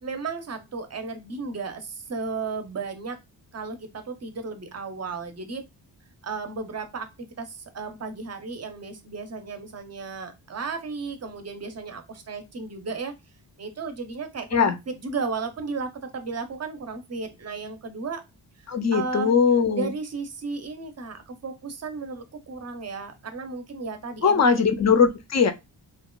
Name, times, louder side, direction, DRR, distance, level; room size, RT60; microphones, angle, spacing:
voice 1, 0.0-3.2 3.5-5.7 6.2-13.1 13.6-18.2 18.9-19.4 19.7-24.6, right 4 dB, 35° right, 0.6 m, -34 dB
voice 2, 18.7-19.9 24.2-25.5, left 6 dB, 40° left, 0.4 m, -20 dB
2.8 x 2.2 x 2.2 m
wide cardioid pair, 95°, 46 cm